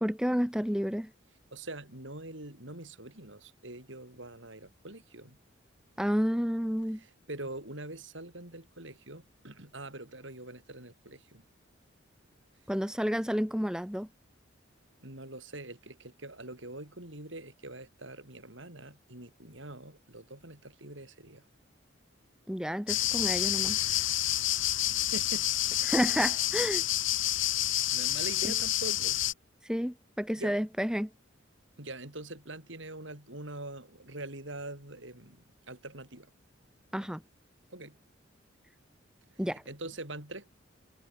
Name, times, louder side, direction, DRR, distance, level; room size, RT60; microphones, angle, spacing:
voice 1, 0.0-1.1 6.0-7.0 12.7-14.1 22.5-23.8 25.8-26.8 28.4-28.5 29.6-31.1 36.9-37.2 39.4-39.6, equal, 5° right, 1.9 m, -30 dB
voice 2, 1.5-5.4 6.9-11.4 15.0-21.4 25.1-25.8 27.9-29.2 30.4-30.5 31.8-36.3 37.7-38.0 39.7-40.5, right 2 dB, 70° right, 7.4 m, -44 dB
sound 1, 22.9-29.3, left 13 dB, 85° left, 4.7 m, -29 dB
head